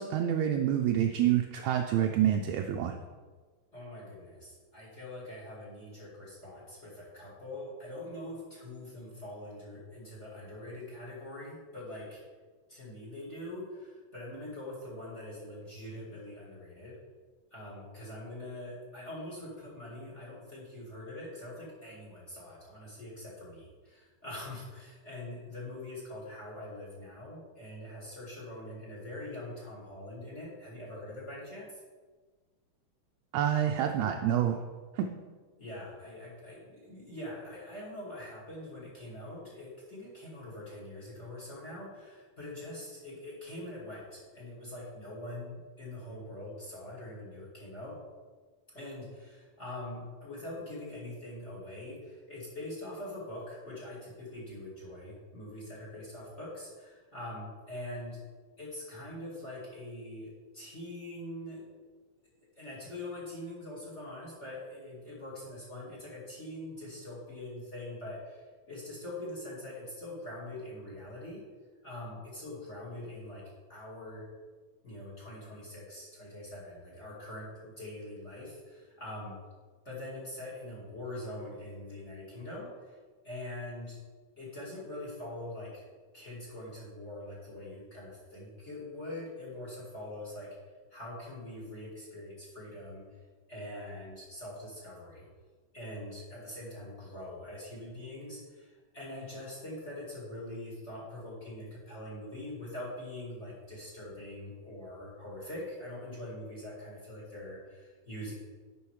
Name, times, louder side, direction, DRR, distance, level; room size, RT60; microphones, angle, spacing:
voice 1, 0.0-3.0 33.3-34.6 35.0-35.1, right 10 dB, 80° right, 3 dB, 1.8 m, -27 dB
voice 2, 3.7-12.2 12.7-17.0 17.5-31.8 35.6-47.9 48.7-58.2 58.6-61.6 62.6-71.4 71.8-73.4 73.7-74.2 74.8-79.4 79.8-83.0 83.2-84.0 84.4-85.8 86.1-90.5 90.9-93.0 93.5-95.3 95.7-108.3, left 1 dB, 25° left, -4 dB, 1.9 m, -43 dB
10.5 x 5.5 x 4.8 m, 1.4 s
omnidirectional pair, 3.5 m